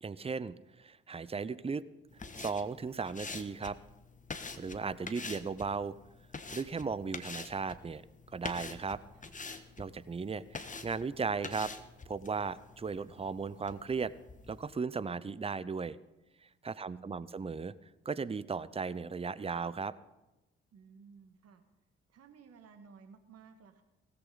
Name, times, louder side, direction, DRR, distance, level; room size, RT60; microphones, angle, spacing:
voice 1, 0.0-1.8 2.4-3.8 4.5-5.9 6.5-8.0 8.3-9.0 9.8-11.7 12.1-14.1 14.5-16.0 16.6-17.7 18.0-19.9, right 5 dB, 20° right, 18 dB, 0.6 m, -36 dB
sound 1, 2.1-14.7, left 4 dB, 25° left, 1.3 m, -46 dB
voice 2, 16.8-17.4 20.7-21.6 22.1-23.8, right 6 dB, 55° right, 8 dB, 1.7 m, -56 dB
17.0 x 15.0 x 4.0 m, 0.99 s
hypercardioid pair, 45°, 30 cm